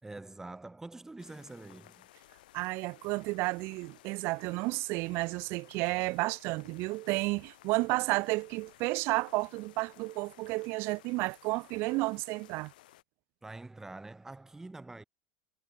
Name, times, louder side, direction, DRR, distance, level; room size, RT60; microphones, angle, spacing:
voice 1, 0.0-2.1 13.4-15.0, right 2 dB, 10° right, 3.7 m, -45 dB
sound 1, 1.2-13.0, left 15 dB, 90° left, 3.6 m, -58 dB
voice 2, 2.5-12.7, right 24 dB, 60° right, 0.7 m, -32 dB
supercardioid pair, 115°, 5 cm